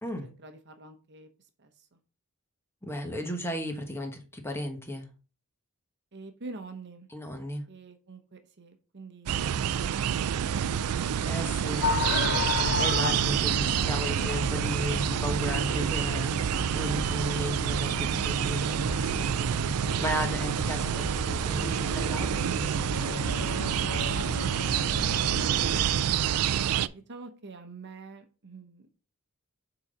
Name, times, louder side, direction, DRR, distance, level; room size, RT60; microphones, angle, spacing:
voice 1, 0.2-2.0 6.1-7.1 7.7-9.5 9.8-12.1 13.0-13.9 14.3-14.5 16.9-17.5 24.3-25.9 26.7-28.9, right 3 dB, 50° right, 0.9 m, -47 dB
voice 2, 2.8-5.1 7.1-7.6 11.2-11.8 12.5-19.3 20.0-23.4 25.7-26.0, equal, 10° left, 1.2 m, -35 dB
sound 1, 9.3-26.9, right 9 dB, 80° right, 0.4 m, -28 dB
sound 2, 11.8-26.0, left 5 dB, 50° left, 0.4 m, -35 dB
7.1 x 3.9 x 5.0 m
head